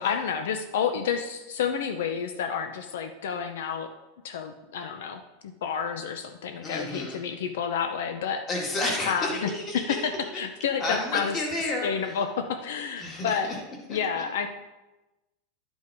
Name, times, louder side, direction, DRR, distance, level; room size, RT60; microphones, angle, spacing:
voice 1, 0.0-3.9 4.2-5.2 5.6-8.4 9.1-11.4 11.8-13.5 13.9-14.5, left 7 dB, 75° left, 7 dB, 0.7 m, -29 dB
voice 2, 6.6-7.2 8.5-10.1 10.8-12.1 13.0-13.6 13.9-14.2, left 2 dB, 20° left, 0 dB, 1.8 m, -31 dB
11.0 x 5.4 x 4.6 m, 1.0 s
supercardioid pair, 175°, 0 cm